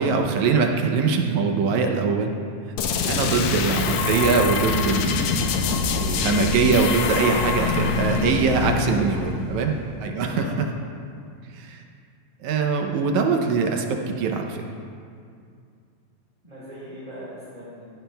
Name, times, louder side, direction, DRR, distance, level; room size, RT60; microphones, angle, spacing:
voice 1, 0.0-2.3 3.1-5.4 6.0-9.8 10.0-10.7 11.5-11.8 12.4-14.6, right 5 dB, 75° right, 3 dB, 2.0 m, -22 dB
sound 1, 2.8-10.3, left 5 dB, 75° left, 1.9 m, -25 dB
voice 2, 8.7-9.0 9.6-9.7 10.2-10.5 16.4-17.8, equal, 15° right, -11 dB, 3.3 m, -40 dB
15.5 x 15.0 x 2.3 m, 2.3 s
omnidirectional pair, 3.6 m